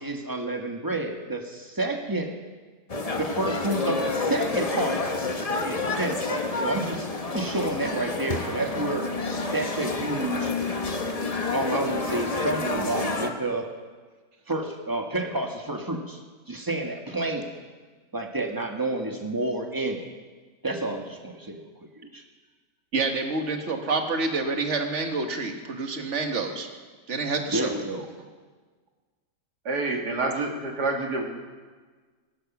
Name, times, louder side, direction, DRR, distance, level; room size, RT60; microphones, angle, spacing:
voice 1, 0.0-2.3 3.2-9.1 9.3-10.5 11.5-13.7 14.5-16.2 16.5-17.6 18.1-20.1 20.6-21.7 22.0-22.2 27.5-28.1, right 2 dB, 15° right, 2 dB, 1.4 m, -30 dB
sound 1, 2.9-13.3, left 3 dB, 30° left, 0.9 m, -29 dB
voice 2, 22.9-26.7 27.1-27.8, right 3 dB, 45° right, 4 dB, 1.7 m, -28 dB
voice 3, 29.7-31.2, right 3 dB, 70° right, 1 dB, 2.6 m, -27 dB
19.5 x 11.0 x 6.1 m, 1.4 s
omnidirectional pair, 1.8 m